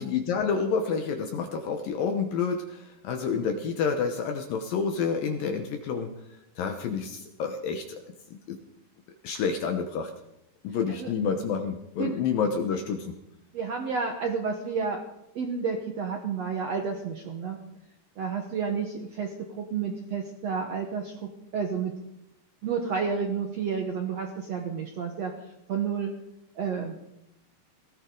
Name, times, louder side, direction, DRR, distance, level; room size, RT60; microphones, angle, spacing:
voice 1, 0.0-6.1 6.6-8.0 8.3-8.6 9.2-10.1 10.6-13.2, left 6 dB, 70° left, 5 dB, 2.3 m, -29 dB
voice 2, 13.5-15.0 15.3-17.6 18.2-21.9 22.6-25.3 25.7-26.1 26.5-26.9, right 5 dB, 90° right, 3 dB, 1.4 m, -30 dB
19.0 x 16.5 x 3.9 m, 0.81 s
omnidirectional pair, 5.0 m